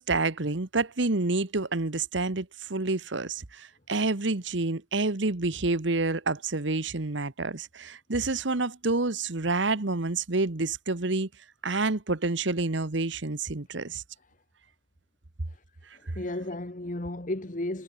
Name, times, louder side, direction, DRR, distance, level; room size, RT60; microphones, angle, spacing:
voice 1, 0.0-11.3 11.6-14.0, right 3 dB, 65° right, 1.3 m, -28 dB
voice 2, 15.9-17.8, left 1 dB, 40° left, 1.4 m, -34 dB
head